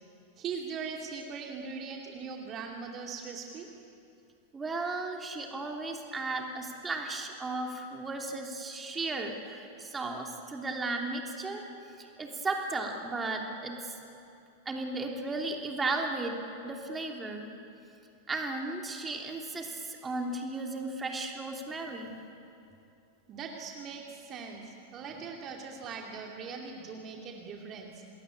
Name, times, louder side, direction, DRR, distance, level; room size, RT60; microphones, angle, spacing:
voice 1, 0.4-3.7 23.3-28.0, right 5 dB, 30° right, 1 dB, 2.6 m, -40 dB
voice 2, 4.5-11.6 12.0-13.9 14.6-16.4 16.6-17.5 18.3-22.1 25.0-25.1, right 3 dB, 15° right, 2 dB, 3.0 m, -35 dB
27.0 x 21.0 x 8.7 m, 2.7 s
figure-of-eight pair, 90°, 0 cm